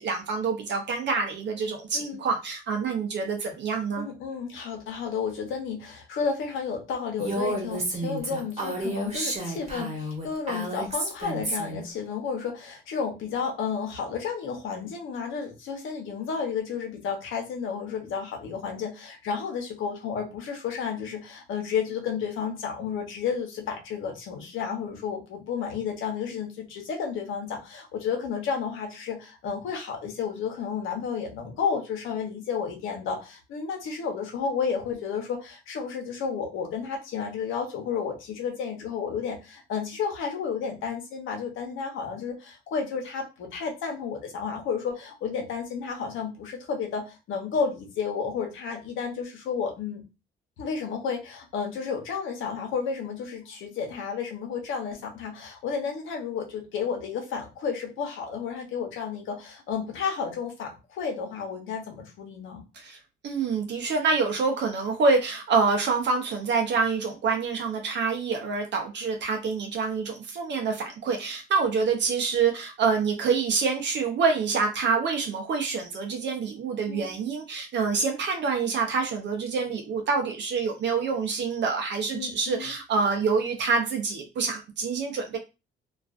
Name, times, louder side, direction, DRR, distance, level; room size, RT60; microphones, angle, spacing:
voice 1, 0.0-4.1 62.7-85.4, right 5 dB, 65° right, 3 dB, 0.6 m, -26 dB
voice 2, 1.9-2.2 4.0-50.0 50.6-62.6 76.9-77.1 82.1-82.7, left 6 dB, 80° left, 2 dB, 0.8 m, -32 dB
Female speech woman speaking, 7.2-11.8, right 1 dB, 35° right, 1.0 m, -31 dB
2.4 x 2.3 x 2.4 m, 0.28 s
cardioid pair, 90°, 20 cm